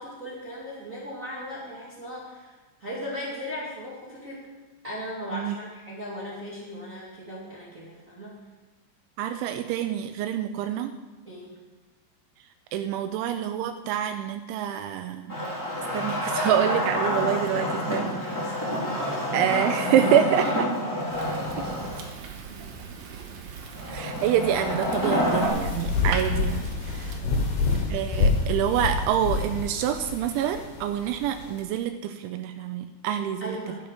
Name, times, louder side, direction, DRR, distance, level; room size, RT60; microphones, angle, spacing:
voice 1, 0.0-4.5 4.8-8.4 11.2-11.5 18.1-18.7 19.0-19.2 22.5-22.7 27.2-27.4 33.4-33.8, equal, 50° right, -6 dB, 0.9 m, -38 dB
voice 2, 9.2-10.9 12.7-15.4 15.8-18.2 19.3-20.7 21.6-21.7 23.9-27.2 27.9-33.6, right 10 dB, 85° right, 8 dB, 2.9 m, -26 dB
Wood, 15.3-22.1 23.7-25.5, left 1 dB, 20° left, 0.4 m, -28 dB
Fire, 21.1-27.2, right 5 dB, 70° right, 2.3 m, -40 dB
sound 1, 25.2-31.6, left 3 dB, 75° left, 4.1 m, -27 dB
11.5 x 10.0 x 5.1 m, 1.2 s
omnidirectional pair, 5.5 m